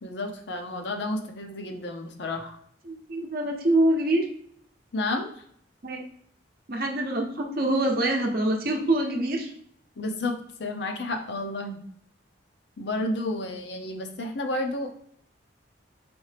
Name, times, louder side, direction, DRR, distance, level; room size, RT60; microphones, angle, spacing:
voice 1, 0.0-2.6 4.9-5.3 10.0-11.8 12.8-14.9, left 2 dB, 65° left, 4 dB, 0.6 m, -31 dB
voice 2, 2.9-4.3 5.8-6.0 6.7-9.5, right 1 dB, 50° right, 1 dB, 0.7 m, -25 dB
4.3 x 3.2 x 3.3 m, 0.65 s
head